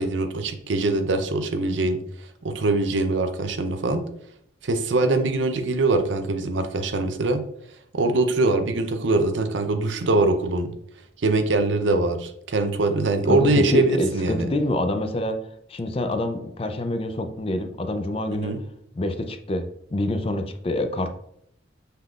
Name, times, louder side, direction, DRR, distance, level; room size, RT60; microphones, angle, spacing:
voice 1, 0.0-2.0 2.4-4.0 4.6-7.4 7.9-10.7 11.2-14.5 18.3-18.6, right 2 dB, 70° right, 7 dB, 0.6 m, -23 dB
voice 2, 13.3-15.4 15.7-18.6 18.9-21.1, left 1 dB, 30° left, 7 dB, 0.4 m, -26 dB
5.5 x 3.7 x 2.4 m, 0.70 s
head